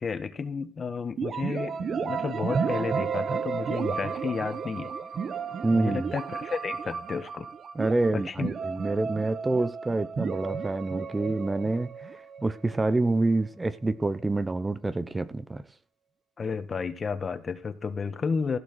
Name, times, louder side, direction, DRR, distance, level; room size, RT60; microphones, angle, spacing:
voice 1, 0.0-4.9 5.7-7.5 8.1-8.5 16.4-18.6, left 5 dB, 40° left, 1.6 m, -32 dB
sound 1, 1.2-12.9, right 6 dB, 55° right, 1.1 m, -33 dB
voice 2, 5.6-6.1 7.7-11.9 12.4-15.6, right 2 dB, 20° right, 0.9 m, -27 dB
16.0 x 6.2 x 6.3 m
cardioid pair, 90°, 0 cm